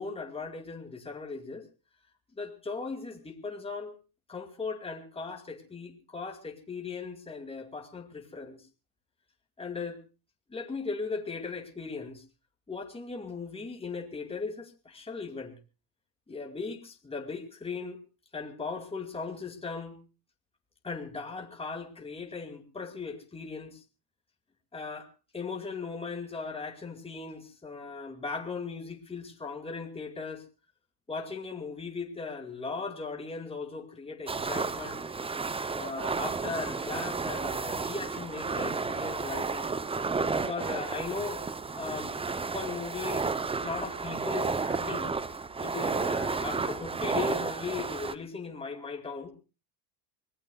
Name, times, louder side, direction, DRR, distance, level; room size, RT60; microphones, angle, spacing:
voice 1, 0.0-1.7 2.4-4.0 4.3-8.6 9.6-10.0 10.5-12.2 12.7-15.5 16.3-18.0 18.3-20.0 20.8-23.8 24.7-25.1 25.3-30.4 31.1-35.0 35.7-39.7 40.3-41.4 41.7-42.1 42.5-43.3 43.6-45.1 45.6-49.3, left 4 dB, 10° left, 3 dB, 2.4 m, -38 dB
sound 1, 34.3-48.1, right 4 dB, 10° right, 0.7 m, -32 dB
25.5 x 18.0 x 2.4 m, 0.31 s
supercardioid pair, 115°, 48 cm